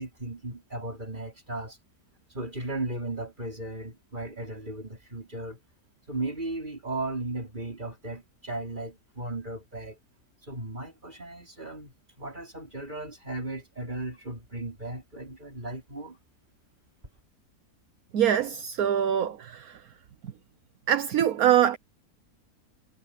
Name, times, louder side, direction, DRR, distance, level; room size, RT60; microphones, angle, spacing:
voice 1, 0.0-1.8 2.3-5.6 6.1-10.0 10.4-16.2, right 2 dB, 30° right, 5.1 m, -36 dB
voice 2, 18.1-19.7 20.9-21.8, right 10 dB, 70° right, 1.4 m, -23 dB
omnidirectional pair, 1.6 m